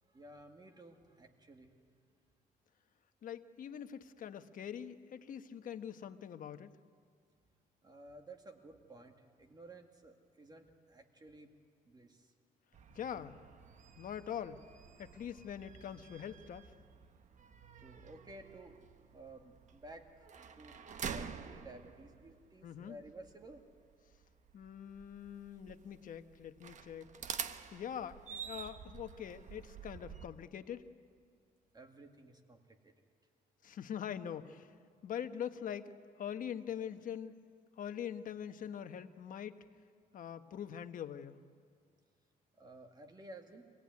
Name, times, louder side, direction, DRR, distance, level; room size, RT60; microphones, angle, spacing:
voice 1, 0.0-1.7 7.8-11.5 11.8-12.3 14.9-15.2 17.8-18.8 19.1-20.3 20.6-20.8 21.1-23.6 31.7-32.9 42.6-43.7, right 1 dB, 25° right, 4 dB, 2.1 m, -54 dB
voice 2, 3.2-6.7 12.9-13.4 14.0-14.6 15.0-16.7 22.6-23.0 24.5-27.1 27.7-30.8 33.6-34.7 35.0-35.9 36.2-37.4 37.8-39.6 40.1-41.4, left 9 dB, 60° left, 9 dB, 1.1 m, -43 dB
sound 1, 12.7-30.3, right 7 dB, 50° right, 1.1 m, -49 dB
25.0 x 17.5 x 9.5 m, 2.1 s
cardioid pair, 100°, 16 cm